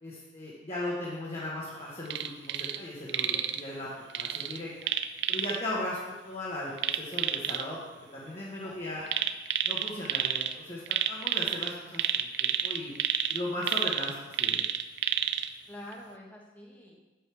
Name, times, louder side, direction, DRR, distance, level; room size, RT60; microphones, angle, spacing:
voice 1, 0.0-4.7 5.3-7.8 8.1-9.1 9.6-14.6, left 1 dB, 30° left, -7 dB, 1.4 m, -37 dB
sound 1, 2.1-2.8 3.1-3.6 4.1-5.6 6.8-7.6 9.1-10.5 10.9-15.5 15.9-16.0, right 10 dB, 60° right, 0.4 m, -30 dB
voice 2, 8.6-9.2 15.7-17.0, left 1 dB, 10° left, -2 dB, 1.2 m, -47 dB
8.7 x 8.0 x 3.4 m, 1.2 s
head